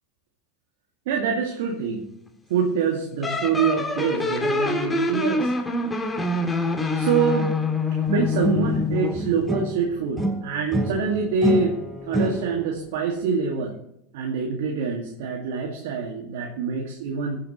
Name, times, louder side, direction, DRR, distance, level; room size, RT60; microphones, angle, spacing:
voice 1, 1.1-2.1 2.5-5.5 6.9-7.5 8.1-11.8 12.0-13.8 14.1-17.4, right 5 dB, 70° right, 0 dB, 2.2 m, -25 dB
sound 1, 3.2-9.3, left 3 dB, 15° left, 2.3 m, -25 dB
sound 2, 8.1-9.8 10.2-12.7, right 1 dB, 5° right, 5.8 m, -27 dB
21.5 x 9.1 x 3.2 m, 0.78 s
hypercardioid pair, 80°, 0 cm